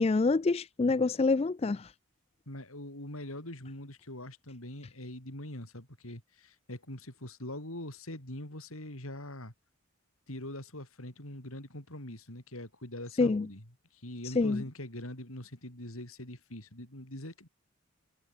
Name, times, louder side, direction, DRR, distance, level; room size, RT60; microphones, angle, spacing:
voice 1, 0.0-1.9 13.2-13.5 14.2-14.6, left 3 dB, 30° left, 0.3 m, -26 dB
voice 2, 2.5-9.5 10.3-13.6 13.9-17.5, left 1 dB, 80° left, 7.8 m, -43 dB
head